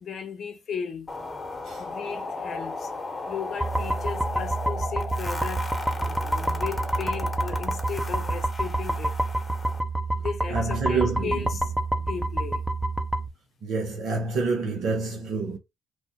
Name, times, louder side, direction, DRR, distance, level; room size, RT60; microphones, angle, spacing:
voice 1, 0.0-1.1 1.8-2.9 3.3-9.2 10.2-11.7 12.0-12.6, left 6 dB, 55° left, 0.7 m, -36 dB
sound 1, 1.1-9.8, left 3 dB, 35° left, 1.0 m, -36 dB
sound 2, 3.6-13.3, right 2 dB, 10° right, 0.6 m, -28 dB
voice 2, 10.5-11.5 13.6-15.6, right 4 dB, 70° right, 0.7 m, -27 dB
3.1 x 2.0 x 2.8 m
hypercardioid pair, 45°, 0 cm